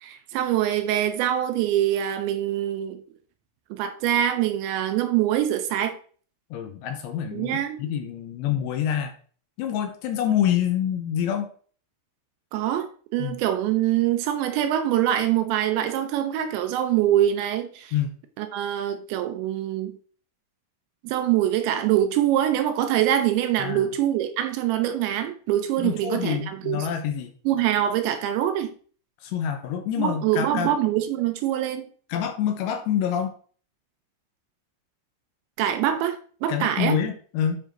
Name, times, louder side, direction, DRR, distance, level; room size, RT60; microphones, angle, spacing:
voice 1, 0.0-3.0 3.7-6.0 7.3-7.8 12.5-17.9 18.4-20.0 21.0-26.8 27.5-28.7 30.0-31.9 35.6-37.0, right 11 dB, 80° right, 2.8 m, -24 dB
voice 2, 6.5-9.1 9.6-11.5 13.2-13.4 17.9-18.2 23.6-23.9 25.8-27.3 29.2-30.7 32.1-33.3 36.5-37.6, left 9 dB, 80° left, 2.7 m, -26 dB
9.8 x 4.8 x 3.0 m
omnidirectional pair, 5.4 m